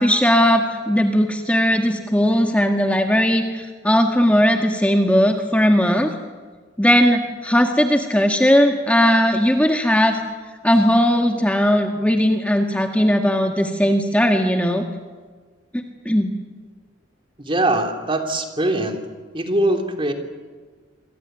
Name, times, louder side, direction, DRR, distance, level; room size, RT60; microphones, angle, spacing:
voice 1, 0.0-6.1 6.8-10.2 10.6-14.8 15.7-16.3, equal, 5° left, 3 dB, 1.6 m, -18 dB
voice 2, 17.4-19.0 19.3-20.1, right 1 dB, 30° right, 4 dB, 3.1 m, -22 dB
27.5 x 23.5 x 9.2 m, 1.4 s
head